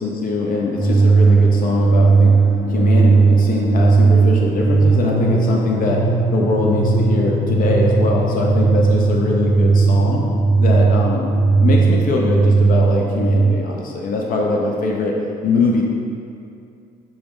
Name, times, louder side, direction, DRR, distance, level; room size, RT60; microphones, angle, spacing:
voice 1, 0.0-2.3 2.7-6.0 6.3-10.2 10.6-11.2 11.6-15.1 15.4-15.8, left 3 dB, 55° left, -1 dB, 0.6 m, -22 dB
sound 1, 0.7-13.5, right 4 dB, 5° left, 1.3 m, -16 dB
4.9 x 3.0 x 3.6 m, 2.5 s
cardioid pair, 110°, 17 cm